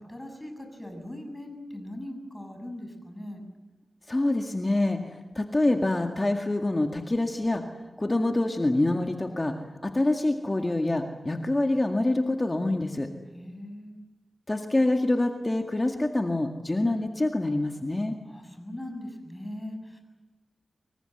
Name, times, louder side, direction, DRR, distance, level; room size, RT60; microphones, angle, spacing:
voice 1, 0.0-3.4 13.3-14.0 18.2-20.0, left 1 dB, 15° left, 5 dB, 7.3 m, -40 dB
voice 2, 4.1-7.6 8.0-9.5 9.8-13.1 14.5-18.2, left 2 dB, 30° left, 3 dB, 1.9 m, -26 dB
25.5 x 23.5 x 8.0 m, 1.2 s
cardioid pair, 55°, 0 cm